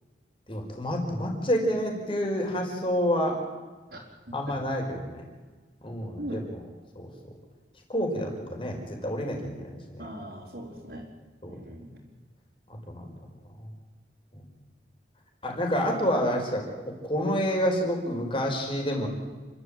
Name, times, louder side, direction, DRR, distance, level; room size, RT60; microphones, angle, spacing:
voice 1, 0.5-3.4 4.3-5.3 5.8-6.4 7.0-7.1 7.9-10.0 11.4-11.6 12.7-13.1 13.5-13.7 15.4-19.1, equal, 30° left, 1 dB, 5.4 m, -28 dB
voice 2, 6.2-6.5 10.0-11.1 11.5-12.0, equal, 65° right, -7 dB, 4.5 m, -39 dB
30.0 x 13.0 x 9.0 m, 1.4 s
head